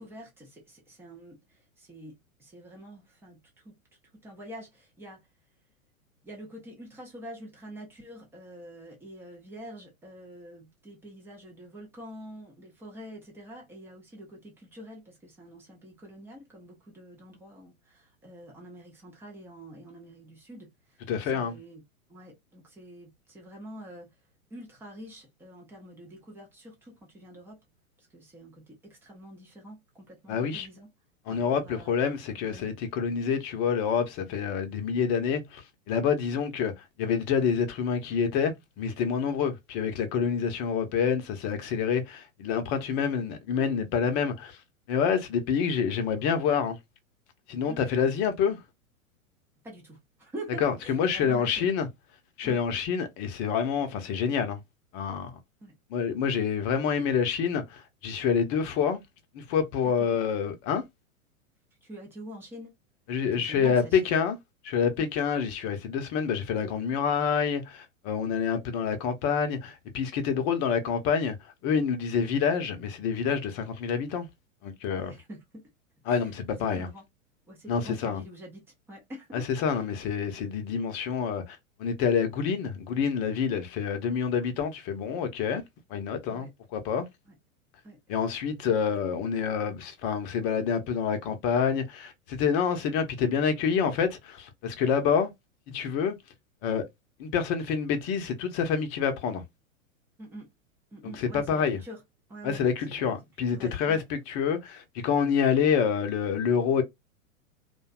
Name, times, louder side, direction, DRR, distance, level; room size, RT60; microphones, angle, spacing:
voice 1, 0.0-3.8 4.2-5.2 6.2-21.8 22.1-24.1 24.5-27.6 28.0-30.9 31.3-32.2 32.5-32.7 47.7-47.8 49.6-51.7 52.4-52.6 55.6-55.7 59.8-60.2 61.8-62.7 63.4-64.1 65.0-65.1 74.9-75.6 76.1-77.0 77.5-78.6 78.9-79.5 86.3-86.5 87.3-87.4 87.8-88.0 100.2-100.5 100.9-102.0 102.3-103.2 103.5-104.0, right 1 dB, 5° right, 0.3 m, -46 dB
voice 2, 21.1-21.6 30.3-30.7 31.3-44.6 44.9-46.8 47.5-48.6 50.6-51.9 52.4-54.6 54.9-55.4 55.9-59.0 59.3-60.8 63.1-64.4 64.6-74.3 74.6-75.1 76.1-76.9 77.7-78.2 79.3-85.6 85.9-87.1 88.1-95.3 95.7-96.1 96.6-96.8 97.2-99.4 101.2-101.8 102.4-106.8, left 6 dB, 35° left, 0.6 m, -27 dB
2.5 x 2.1 x 2.3 m
hypercardioid pair, 110°, 42 cm